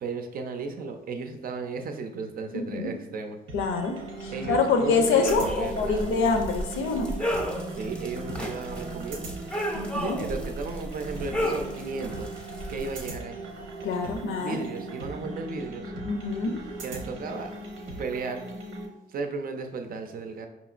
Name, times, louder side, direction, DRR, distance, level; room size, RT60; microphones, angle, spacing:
voice 1, 0.0-3.4 4.3-6.1 7.7-9.3 10.0-12.3 12.7-13.4 14.4-15.9 16.8-17.5 18.0-18.4 19.1-20.5, right 4 dB, 45° right, 0.5 m, -35 dB
voice 2, 2.5-2.9 3.5-7.2 9.7-10.2 13.8-14.6 16.0-16.6, left 4 dB, 85° left, 0.6 m, -26 dB
sound 1, 3.5-18.9, right 3 dB, 90° right, 0.9 m, -39 dB
sound 2, 5.2-13.1, equal, 5° left, 0.5 m, -33 dB
5.0 x 2.9 x 2.4 m
cardioid pair, 90°, 20 cm